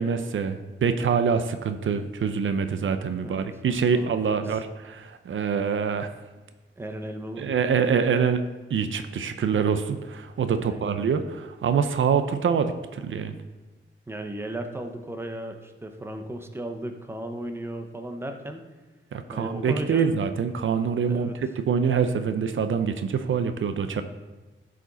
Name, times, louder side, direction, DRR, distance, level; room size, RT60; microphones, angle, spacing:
voice 1, 0.0-6.1 7.4-8.4 8.7-13.3 19.1-21.3 21.7-24.0, right 6 dB, 70° right, 9 dB, 0.6 m, -25 dB
voice 2, 3.9-4.6 6.8-7.5 10.5-10.9 14.1-18.6 19.3-20.1 21.1-21.4, right 1 dB, 10° right, 5 dB, 0.8 m, -35 dB
14.0 x 5.0 x 4.0 m, 1.2 s
wide cardioid pair, 150°, 21 cm